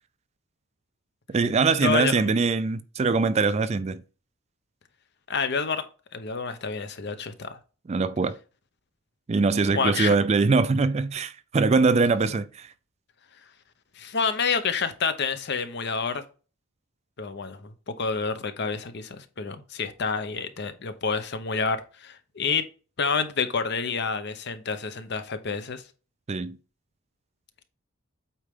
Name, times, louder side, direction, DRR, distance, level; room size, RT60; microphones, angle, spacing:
voice 1, 1.3-4.0 7.9-8.4 9.3-12.7 26.3-26.6, right 4 dB, 30° right, 0.4 m, -22 dB
voice 2, 1.8-2.3 5.3-5.8 6.1-7.6 9.7-10.2 14.0-16.2 17.2-22.6 23.0-25.8, left 5 dB, 55° left, 0.8 m, -28 dB
8.4 x 4.4 x 3.6 m
head